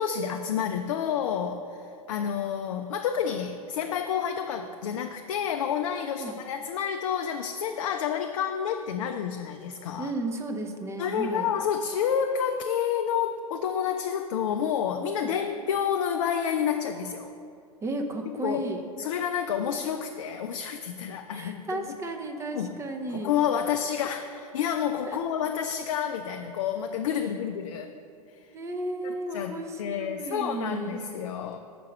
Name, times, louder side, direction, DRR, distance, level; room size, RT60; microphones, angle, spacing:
voice 1, 0.0-10.1 11.0-17.3 18.4-18.6 19.0-21.8 22.5-22.7 23.1-27.9 29.0-31.6, left 8 dB, 55° left, 6 dB, 0.4 m, -29 dB
voice 2, 10.0-11.5 15.2-15.3 17.8-18.8 21.3-23.4 25.1-25.2 28.5-31.0, right 2 dB, 15° right, 4 dB, 0.6 m, -34 dB
5.9 x 4.6 x 6.3 m, 2.4 s
figure-of-eight pair, 95°, 19 cm